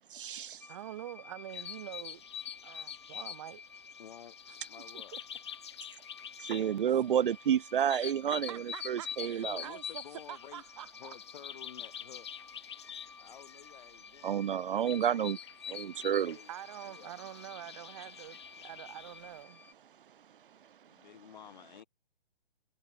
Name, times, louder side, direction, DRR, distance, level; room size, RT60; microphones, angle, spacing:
voice 1, 0.1-0.6 6.4-9.6 14.2-15.4 15.7-16.4, right 9 dB, 60° right, 0.5 m, -30 dB
sound 1, 0.6-19.7, left 5 dB, 5° left, 1.4 m, -54 dB
voice 2, 0.7-2.2 2.6-3.6 4.5-4.6 5.1-5.2 7.9-8.1 8.5-10.0 10.3-11.1 16.5-19.6, right 12 dB, 30° right, 1.1 m, -46 dB
sound 2, 1.5-19.2, left 9 dB, 30° left, 0.5 m, -46 dB
voice 3, 4.0-5.2 9.4-10.6 11.0-12.3 13.2-14.4 16.0-16.5 16.8-17.1 20.9-21.8, left 9 dB, 50° left, 4.9 m, -52 dB
hypercardioid pair, 155°, 30 cm